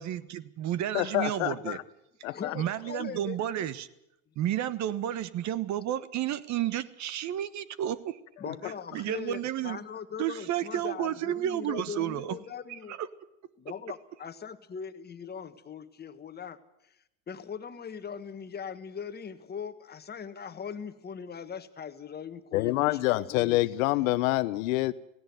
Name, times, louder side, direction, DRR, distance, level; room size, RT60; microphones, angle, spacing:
voice 1, 0.0-1.8 2.5-3.9 4.4-8.2 8.9-9.8 10.2-12.4 12.9-13.1, right 11 dB, 40° right, 17 dB, 1.2 m, -31 dB
voice 2, 0.9-1.8 2.2-2.5 22.5-24.9, left 18 dB, 70° left, 16 dB, 1.0 m, -27 dB
voice 3, 2.3-3.7 8.4-13.0 13.6-17.0 17.3-23.7, left 7 dB, 20° left, 10 dB, 1.5 m, -40 dB
17.5 x 17.0 x 9.2 m, 0.82 s
hypercardioid pair, 105°, 43 cm